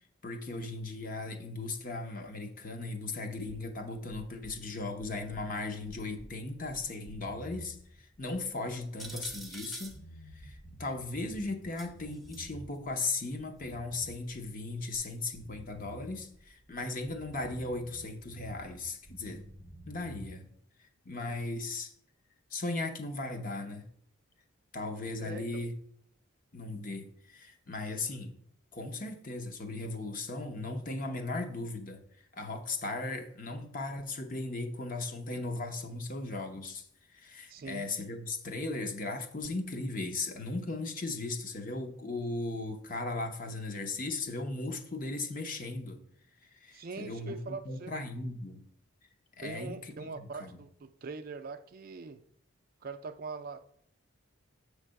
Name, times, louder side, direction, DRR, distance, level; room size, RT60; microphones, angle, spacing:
voice 1, 0.2-9.9 10.3-19.4 19.9-20.5 21.1-21.9 22.5-23.9 24.7-25.7 26.5-28.4 28.7-32.0 32.3-36.9 37.1-46.0 46.4-48.6 49.4-50.6, left 2 dB, 40° left, 0.8 m, -37 dB
sound 1, 3.5-9.6 9.8-12.9 13.2-15.1 15.3-18.8 19.1-20.3, right 1 dB, 55° left, 1.7 m, -50 dB
sound 2, 9.0-10.0 11.8-12.4 13.2-13.3 14.9-15.0, right 2 dB, ahead, 0.6 m, -45 dB
voice 2, 25.2-25.6 37.5-37.9 46.7-47.9 49.4-52.2 52.8-53.6, right 4 dB, 45° right, 0.4 m, -42 dB
7.6 x 3.3 x 6.3 m
head